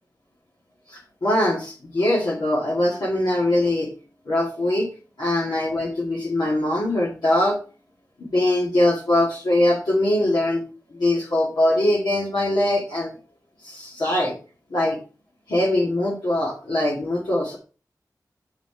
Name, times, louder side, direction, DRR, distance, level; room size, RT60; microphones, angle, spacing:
voice 1, 0.9-3.9 4.3-4.9 5.2-7.6 8.2-10.7 10.9-13.1 13.6-14.4 14.7-15.0 15.5-17.6, left 1 dB, 80° left, -4 dB, 2.0 m, -22 dB
5.8 x 5.8 x 4.4 m, 0.35 s
cardioid pair, 50°, 7 cm